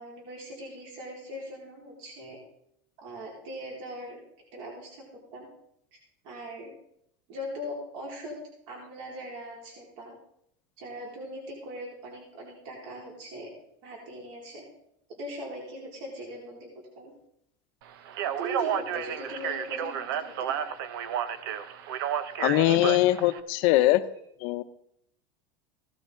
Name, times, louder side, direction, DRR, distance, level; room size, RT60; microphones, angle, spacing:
voice 1, 0.0-2.4 3.0-4.2 4.5-5.0 5.3-5.5 5.9-6.0 6.2-6.7 7.3-8.4 8.7-10.1 10.8-13.5 13.8-14.6 15.2-16.7 16.9-17.1 18.2-20.5, equal, 55° right, -2 dB, 4.5 m, -40 dB
Speech, 18.1-23.4, right 8 dB, 80° right, 1.0 m, -31 dB
voice 2, 22.4-24.0 24.4-24.6, left 16 dB, 55° left, 10 dB, 0.8 m, -22 dB
16.5 x 13.0 x 3.8 m, 0.74 s
supercardioid pair, 165°, 12 cm